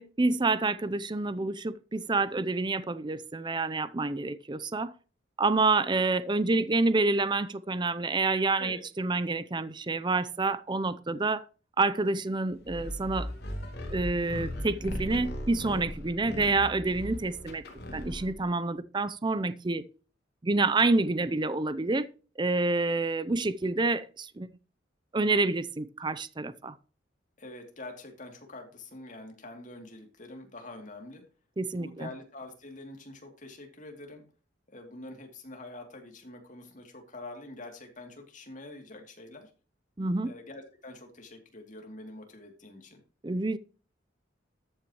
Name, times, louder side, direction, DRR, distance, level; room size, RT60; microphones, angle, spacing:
voice 1, 0.0-4.9 5.4-11.5 11.8-13.3 13.9-17.6 17.9-19.8 20.4-22.1 22.4-24.5 25.1-26.8 31.6-32.1 40.0-40.3 43.2-43.6, right 3 dB, 25° right, 0.5 m, -28 dB
sound 1, 12.6-18.4, equal, 55° left, 3.9 m, -37 dB
voice 2, 17.9-18.4 27.4-31.2 31.8-34.2 34.7-39.5 40.2-43.0, left 2 dB, 40° left, 2.7 m, -45 dB
13.5 x 8.8 x 3.0 m
head